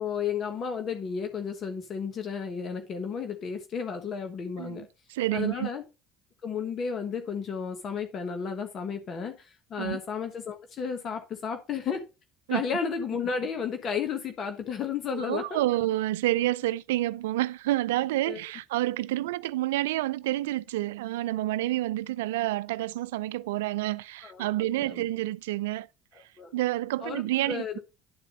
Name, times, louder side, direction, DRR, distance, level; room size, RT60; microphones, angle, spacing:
voice 1, 0.0-4.9 5.3-5.8 6.4-12.0 12.5-15.6 18.3-18.4 24.2-25.1 26.4-26.5 27.0-27.8, left 6 dB, 50° left, 1.3 m, -33 dB
voice 2, 4.6-5.7 9.8-10.0 12.5-12.6 15.1-25.9 26.5-27.8, right 16 dB, 90° right, 0.3 m, -29 dB
11.0 x 4.2 x 5.1 m
supercardioid pair, 80°, 0 cm